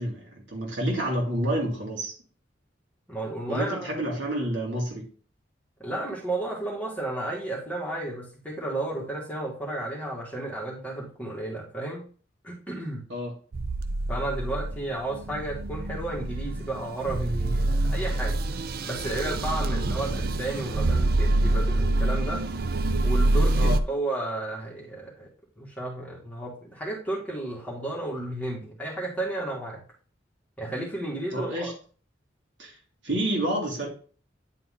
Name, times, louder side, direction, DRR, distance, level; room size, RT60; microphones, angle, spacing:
voice 1, 0.0-2.2 3.5-5.1 13.1-13.3 23.5-23.8 31.3-31.7 32.6-32.8 33.0-33.9, right 1 dB, 80° right, 2.4 m, -29 dB
voice 2, 3.1-4.0 5.8-12.0 12.4-13.0 14.1-18.4 18.8-22.4 23.0-25.3 25.6-29.8 30.6-31.7, right 1 dB, 10° left, 2.1 m, -33 dB
sound 1, 13.5-23.8, right 2 dB, 55° right, 0.5 m, -26 dB
9.9 x 4.4 x 3.8 m
head